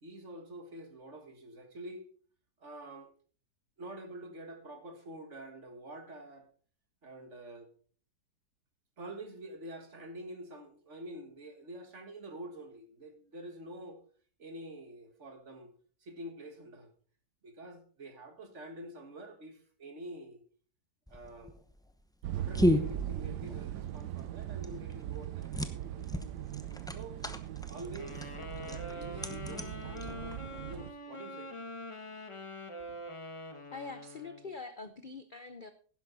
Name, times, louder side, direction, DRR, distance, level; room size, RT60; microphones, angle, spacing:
voice 1, 0.0-2.1 2.6-3.1 3.8-6.5 7.0-7.7 9.0-14.0 14.4-15.7 16.0-16.9 17.4-20.4 21.1-21.6 22.3-26.1 26.9-27.2 27.7-31.5, right 1 dB, 45° right, 6 dB, 2.0 m, -47 dB
sound 1, 21.1-30.6, left 1 dB, 5° left, 0.5 m, -35 dB
sound 2, 22.2-30.9, right 12 dB, 80° right, 1.2 m, -40 dB
sound 3, 28.0-34.5, left 1 dB, 20° left, 1.2 m, -44 dB
voice 2, 33.7-35.7, left 4 dB, 45° left, 10 dB, 0.6 m, -44 dB
11.5 x 10.5 x 4.0 m, 0.43 s
omnidirectional pair, 1.8 m